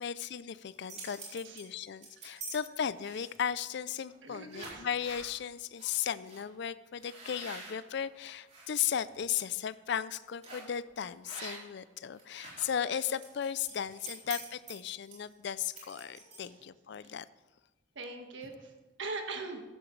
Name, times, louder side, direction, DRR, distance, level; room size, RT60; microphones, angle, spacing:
voice 1, 0.0-17.2, left 8 dB, 60° left, 16 dB, 0.4 m, -36 dB
sound 1, 0.6-2.5 3.0-3.5 4.0-4.2 4.5-5.3 5.8-5.9 6.3-6.4 7.0-8.7 9.1-9.4 10.4-10.7 11.2-11.8 12.1-16.6, right 3 dB, 35° right, 4.1 m, -46 dB
voice 2, 1.3-1.6 2.4-2.7 4.2-4.9 16.4-16.6 17.0-17.1 17.9-19.6, right 3 dB, 70° right, 4 dB, 1.6 m, -42 dB
14.5 x 11.5 x 3.2 m, 1.1 s
head